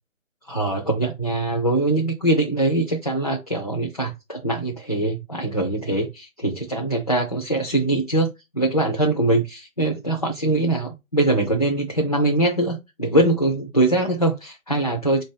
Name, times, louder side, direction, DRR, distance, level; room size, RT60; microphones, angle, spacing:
voice 1, 0.5-15.2, right 2 dB, 30° left, 0.6 m, -22 dB
4.1 x 2.6 x 3.8 m
hypercardioid pair, 170°, 40 cm